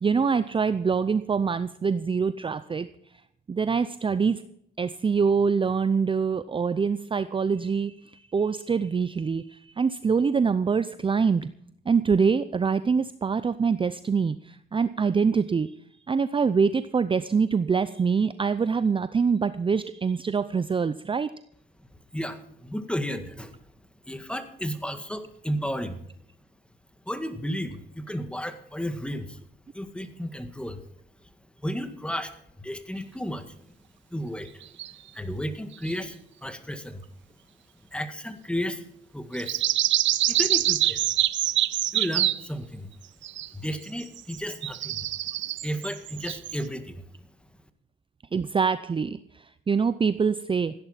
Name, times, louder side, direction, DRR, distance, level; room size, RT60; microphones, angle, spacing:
voice 1, 0.0-2.9 3.5-4.4 4.8-11.5 11.9-15.7 16.1-21.3 48.3-50.7, right 5 dB, 25° right, 13 dB, 0.6 m, -25 dB
voice 2, 22.1-23.6 24.1-26.0 27.1-29.4 29.7-30.8 31.6-33.6 34.1-34.6 35.1-37.0 37.9-38.8 39.1-39.6 40.3-41.1 41.9-42.9 43.5-45.1 45.4-47.0, equal, 5° left, 9 dB, 1.8 m, -33 dB
sound 1, 34.6-34.9 35.9-36.0 39.3-42.4 43.2-43.7 44.0-46.6, right 13 dB, 70° right, 0.6 m, -25 dB
16.0 x 10.5 x 5.8 m, 0.72 s
cardioid pair, 90°, 20 cm